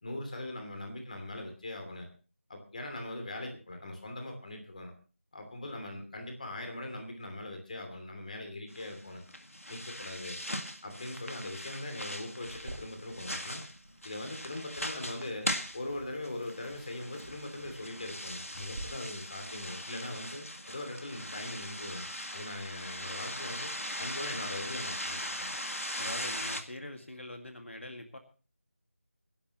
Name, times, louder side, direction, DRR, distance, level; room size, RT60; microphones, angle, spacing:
voice 1, 0.0-2.1 2.5-4.9 5.3-9.2 9.7-10.4 10.8-13.6 14.0-23.7 24.0-25.5, left 1 dB, 35° left, 4 dB, 2.8 m, -41 dB
sound 1, 8.7-26.6, left 1 dB, 85° left, 1.9 m, -40 dB
sound 2, 12.4-18.8, right 2 dB, 30° right, 5.3 m, -51 dB
voice 2, 26.0-28.2, left 1 dB, 65° left, 5 dB, 2.0 m, -43 dB
24.5 x 11.5 x 3.0 m, 0.35 s
figure-of-eight pair, 165°, 7 cm